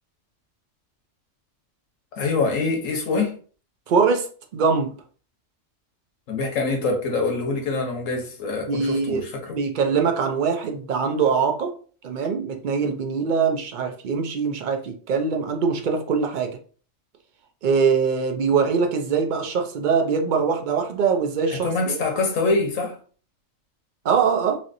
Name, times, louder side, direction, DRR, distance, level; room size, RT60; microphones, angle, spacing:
voice 1, 2.2-3.4 6.3-9.6 21.5-23.0, left 3 dB, 90° left, 1.2 m, -25 dB
voice 2, 3.9-4.3 4.5-4.9 8.7-9.2 9.5-11.7 12.0-16.6 17.6-22.0 24.0-24.6, right 5 dB, 60° right, 0.5 m, -22 dB
3.1 x 2.8 x 2.5 m
omnidirectional pair, 1.3 m